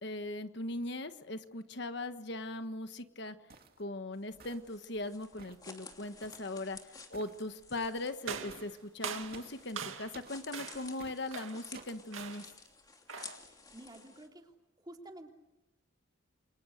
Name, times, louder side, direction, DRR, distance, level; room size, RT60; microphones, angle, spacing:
voice 1, 0.0-3.3 3.8-6.8 7.1-12.5, left 2 dB, 55° left, 9 dB, 1.4 m, -39 dB
sound 1, 3.5-3.8 4.4-4.8 5.4-5.7 6.2-6.5 7.1-7.4 8.5-8.7 9.3-9.6 10.1-10.4 11.0-11.2 11.7-12.0, right 3 dB, 50° right, 2.3 m, -53 dB
sound 2, 4.1-14.3, left 4 dB, 20° left, 2.8 m, -53 dB
sound 3, 8.2-10.2 10.5-10.9 11.3-11.7 12.1-12.6 13.1-13.5, right 6 dB, 90° right, 2.3 m, -42 dB
voice 2, 13.4-14.5 14.8-15.3, right 1 dB, 20° right, 2 dB, 3.4 m, -51 dB
30.0 x 25.0 x 6.5 m, 0.99 s
head